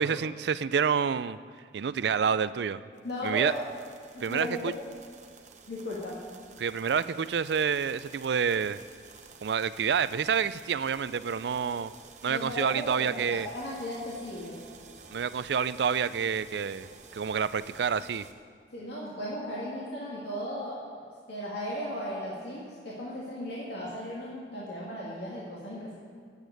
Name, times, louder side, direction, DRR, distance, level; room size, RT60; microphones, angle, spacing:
voice 1, 0.0-1.4 1.7-2.8 3.2-3.5 4.2-4.7 6.6-8.8 9.4-11.9 12.2-13.5 15.1-18.3, right 6 dB, 70° right, 16 dB, 0.4 m, -28 dB
voice 2, 3.0-3.6 4.1-4.7 5.7-6.2 12.3-14.6 18.7-20.8 21.3-25.9, equal, 70° left, -6 dB, 2.2 m, -36 dB
sound 1, 3.0-18.3, right 5 dB, 40° right, 0.9 m, -52 dB
9.1 x 8.2 x 9.3 m, 2.1 s
head